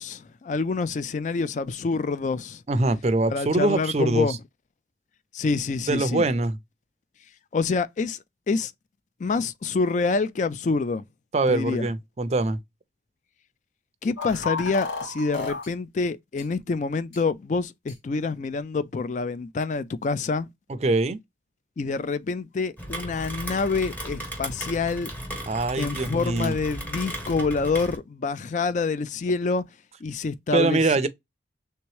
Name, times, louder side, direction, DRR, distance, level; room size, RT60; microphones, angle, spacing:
voice 1, 0.0-2.6 3.3-4.4 5.3-6.3 7.5-8.2 8.5-8.7 9.2-11.0 11.5-11.9 14.0-20.5 21.8-25.1 25.8-29.6 30.0-31.1, left 4 dB, 45° left, 0.3 m, -27 dB
voice 2, 2.7-4.4 5.9-6.6 11.3-12.6 20.8-21.2 25.5-26.5 30.5-31.1, right 2 dB, 35° right, 0.4 m, -23 dB
sound 1, 14.2-15.7 16.4-16.5 17.1-17.2 17.9-18.0, left 4 dB, 90° left, 1.7 m, -32 dB
Rain, 22.8-28.0, right 1 dB, 10° left, 0.8 m, -35 dB
3.4 x 2.8 x 3.1 m
head